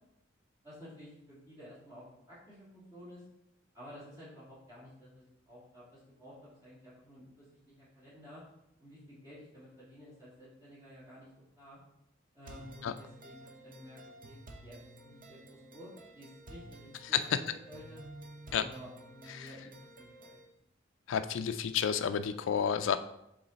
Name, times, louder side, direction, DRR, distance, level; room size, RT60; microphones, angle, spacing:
voice 1, 0.6-3.2 3.7-8.4 8.8-11.3 11.6-11.8 12.3-18.0 18.5-20.3, equal, 20° right, -11 dB, 2.4 m, -52 dB
sound 1, 12.4-20.4, right 1 dB, 45° right, 0.7 m, -52 dB
voice 2, 21.1-23.0, left 8 dB, 80° left, 10 dB, 0.4 m, -30 dB
7.0 x 3.7 x 4.0 m, 0.82 s
head